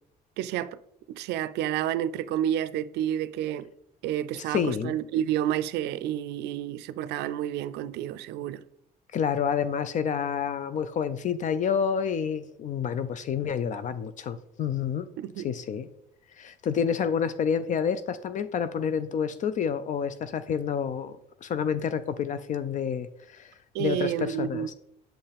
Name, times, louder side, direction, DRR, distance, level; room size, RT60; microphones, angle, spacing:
voice 1, 0.4-0.8 1.1-3.7 4.0-8.6 15.2-15.5 23.7-24.7, right 11 dB, 80° right, 0.4 m, -30 dB
voice 2, 4.4-4.9 9.1-15.1 15.4-15.9 16.4-23.5 23.8-24.7, left 7 dB, 50° left, 0.4 m, -29 dB
7.2 x 5.6 x 3.4 m
cardioid pair, 110°, 17 cm